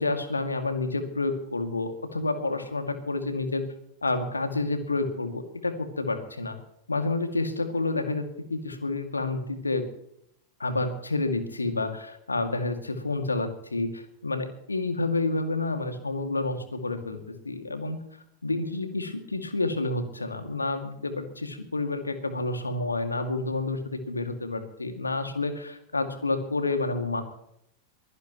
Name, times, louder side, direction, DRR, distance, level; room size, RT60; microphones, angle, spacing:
voice 1, 0.0-3.6 4.0-6.6 6.9-9.9 10.6-18.0 18.4-27.2, left 2 dB, 80° left, 7 dB, 2.2 m, -29 dB
23.0 x 16.5 x 3.1 m, 0.73 s
figure-of-eight pair, 90°, 0 cm